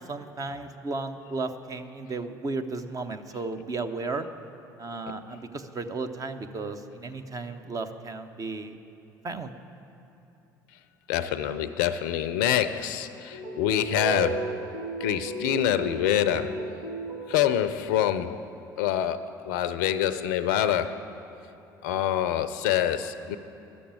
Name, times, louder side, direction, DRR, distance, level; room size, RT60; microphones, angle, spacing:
voice 1, 0.0-4.3 4.8-8.8 9.2-9.5, right 3 dB, 35° right, 9 dB, 0.9 m, -34 dB
voice 2, 11.1-14.7 15.0-16.7 17.3-18.5 18.8-21.1 21.8-23.4, left 10 dB, 75° left, 12 dB, 0.5 m, -26 dB
sound 1, 13.3-17.5, right 3 dB, 80° right, 1.6 m, -34 dB
12.0 x 7.0 x 8.9 m, 3.0 s
hypercardioid pair, 65°, 10 cm